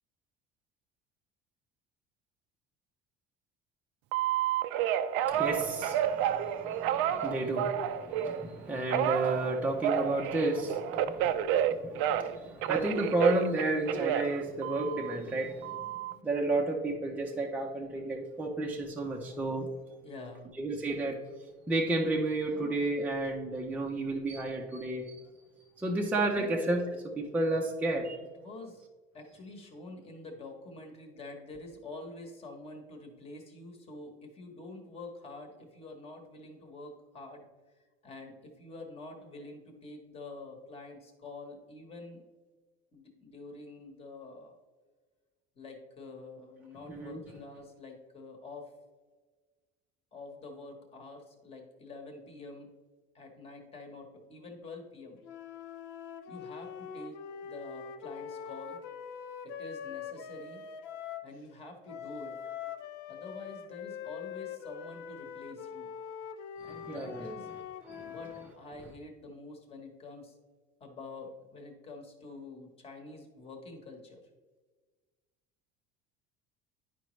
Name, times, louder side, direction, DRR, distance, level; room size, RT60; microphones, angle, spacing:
Telephone, 4.1-8.4 8.9-12.4 12.6-15.1 15.6-16.1, right 10 dB, 75° right, 0.5 m, -30 dB
voice 1, 5.3-15.8 16.2-19.7 20.6-21.2 21.7-25.2 25.8-26.8 27.2-28.2 46.9-47.2 66.6-67.2 67.9-68.2, right 2 dB, 10° right, -1 dB, 0.6 m, -32 dB
voice 2, 20.0-20.5 22.5-22.8 26.4-26.6 28.3-28.8 29.1-37.5 38.0-42.2 42.9-44.6 45.6-48.7 50.1-52.7 53.1-55.2 56.3-58.8 59.4-60.6 61.2-62.5 63.1-65.9 66.6-67.5 68.0-70.4 70.8-74.3, left 2 dB, 30° left, 3 dB, 1.2 m, -47 dB
sound 1, 55.2-61.3 61.9-68.5, left 7 dB, 65° left, 0.6 m, -43 dB
10.5 x 5.0 x 3.1 m, 1.4 s
cardioid pair, 165°, 21 cm